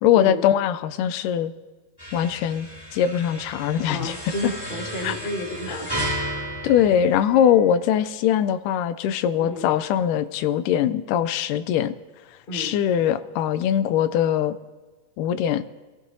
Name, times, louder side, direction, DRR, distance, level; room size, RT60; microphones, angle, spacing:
voice 1, 0.0-1.5 2.1-4.2 5.0-5.1 5.7-5.8 6.6-11.9 12.5-14.6 15.2-15.7, left 9 dB, 85° left, 13 dB, 2.1 m, -21 dB
sound 1, 2.0-7.8, right 1 dB, 10° left, 1.9 m, -33 dB
voice 2, 3.9-6.1 9.4-9.7 12.5-12.8, left 1 dB, 45° left, 1 dB, 0.6 m, -31 dB
21.5 x 14.5 x 2.7 m, 1.4 s
omnidirectional pair, 3.7 m